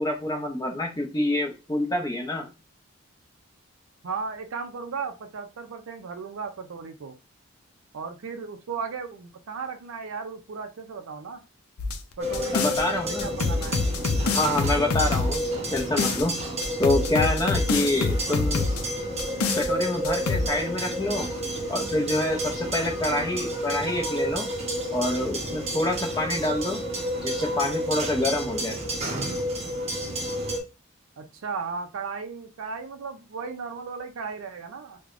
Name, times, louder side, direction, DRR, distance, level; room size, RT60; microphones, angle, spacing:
voice 1, 0.0-2.5 12.5-13.3 14.3-15.4 15.7-16.4 16.8-18.7 19.6-21.3 21.7-24.5 24.9-26.8 27.2-28.8, left 1 dB, 15° left, 4 dB, 0.5 m, -27 dB
voice 2, 4.0-7.2 7.9-11.4 12.2-13.8 31.2-35.0, right 5 dB, 70° right, 6 dB, 0.4 m, -35 dB
sound 1, 11.8-12.8 13.2-16.3 16.6-18.8 19.2-19.7 20.0-20.5, left 4 dB, 80° left, 0.5 m, -26 dB
sound 2, 12.2-30.6, equal, 30° right, 0.7 m, -30 dB
4.6 x 2.1 x 2.4 m, 0.28 s
head